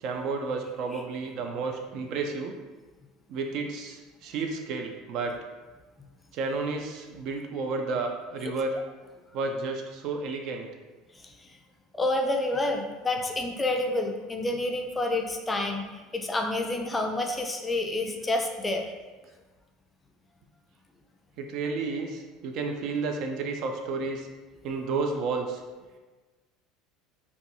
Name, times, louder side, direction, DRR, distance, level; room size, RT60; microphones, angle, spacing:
voice 1, 0.0-2.5 3.3-5.4 6.3-8.8 9.3-10.7 21.4-24.3 24.6-25.6, right 4 dB, 60° right, 4 dB, 0.3 m, -31 dB
voice 2, 12.0-15.9 16.1-18.9, left 2 dB, 15° left, 3 dB, 0.3 m, -28 dB
2.5 x 2.2 x 2.6 m, 1.3 s
supercardioid pair, 95°, 0 cm